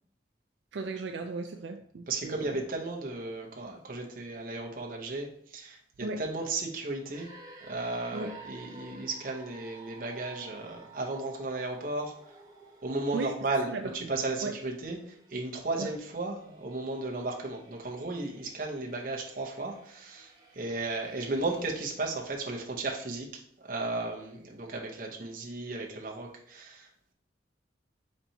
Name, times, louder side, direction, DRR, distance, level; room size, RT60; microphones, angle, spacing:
voice 1, 0.7-2.6 6.0-6.2 8.1-8.3 13.1-13.8 14.4-14.5 15.8-15.9, right 3 dB, 75° right, 5 dB, 0.4 m, -36 dB
voice 2, 2.1-7.3 7.6-12.1 12.8-26.9, right 2 dB, 50° right, 0 dB, 0.8 m, -35 dB
sound 1, 7.1-21.8, right 2 dB, 20° right, 0.8 m, -53 dB
4.4 x 4.2 x 2.7 m, 0.66 s
head